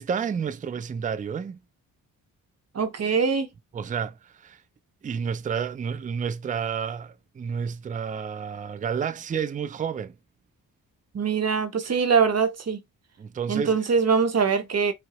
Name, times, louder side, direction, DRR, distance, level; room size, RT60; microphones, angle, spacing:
voice 1, 0.0-1.6 3.7-4.6 5.0-10.1 11.8-12.0 13.2-13.8, right 7 dB, 25° right, 0.4 m, -30 dB
voice 2, 2.7-3.5 11.1-12.8 13.5-14.9, right 5 dB, 45° right, 0.7 m, -23 dB
4.5 x 2.0 x 2.9 m
cardioid pair, 60°, 36 cm